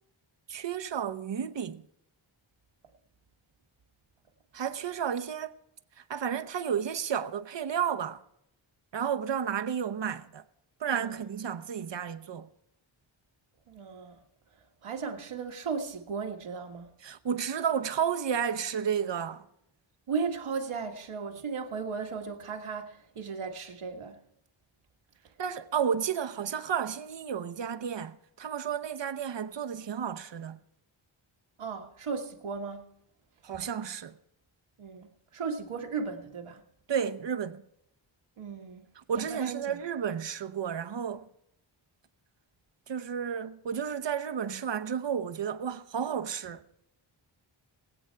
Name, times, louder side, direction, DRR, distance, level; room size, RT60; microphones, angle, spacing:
voice 1, 0.5-1.8 4.5-5.5 6.0-8.2 8.9-10.4 10.8-12.5 17.0-19.4 25.4-30.6 33.4-34.2 36.9-37.6 39.0-41.3 42.9-46.6, right 8 dB, 60° right, 1.0 m, -32 dB
voice 2, 10.9-11.2 13.7-14.2 14.8-16.9 20.1-24.2 31.6-32.9 34.8-35.1 35.3-36.6 38.4-38.8 39.2-39.8, right 5 dB, 85° right, 1.8 m, -36 dB
21.5 x 8.1 x 4.5 m
wide cardioid pair, 90°, 49 cm